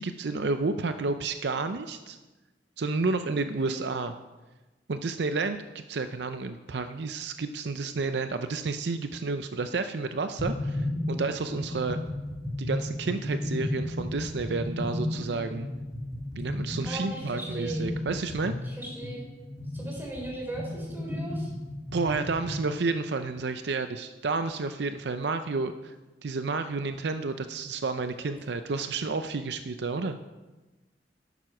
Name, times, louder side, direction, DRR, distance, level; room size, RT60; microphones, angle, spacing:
voice 1, 0.0-2.2 2.8-4.1 4.9-12.0 12.6-15.7 16.4-18.6 21.9-26.0 26.2-30.2, right 3 dB, 70° right, 9 dB, 0.5 m, -31 dB
sound 1, 10.4-22.6, left 1 dB, 20° left, 4.4 m, -33 dB
voice 2, 16.8-17.9 18.6-19.3 19.7-21.5 28.2-28.3, right 2 dB, 10° right, -2 dB, 3.8 m, -38 dB
11.0 x 9.1 x 5.9 m, 1.2 s
head